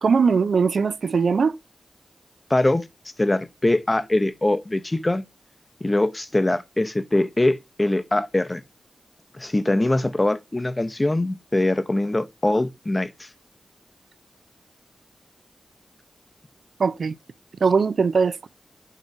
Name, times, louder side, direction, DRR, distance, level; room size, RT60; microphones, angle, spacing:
voice 1, 0.0-1.6 16.8-17.2 17.6-18.5, right 5 dB, 75° right, 0.3 m, -20 dB
voice 2, 2.5-2.8 3.2-5.2 5.8-8.6 9.4-13.3, left 1 dB, 25° left, 0.6 m, -22 dB
6.5 x 3.1 x 4.6 m
cardioid pair, 60°, 0 cm